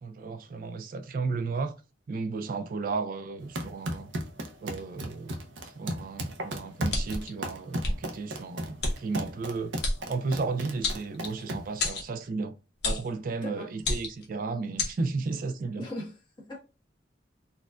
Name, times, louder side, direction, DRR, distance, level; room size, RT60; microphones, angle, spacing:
voice 1, 0.0-1.8 2.1-4.1 4.6-9.7 10.1-12.5 12.8-15.9, right 4 dB, 50° right, 0.3 m, -34 dB
sound 1, 3.4-11.8, right 1 dB, 80° right, 0.6 m, -36 dB
sound 2, 6.9-7.3 7.8-8.0 8.8-8.9 9.8-10.0 10.8-11.4 11.8-12.1 12.8-13.1 13.8-14.3 14.8-14.9, left 3 dB, 60° left, 1.0 m, -29 dB
voice 2, 13.4-13.7 15.8-16.6, left 1 dB, 25° left, 1.2 m, -39 dB
4.2 x 2.3 x 2.3 m
head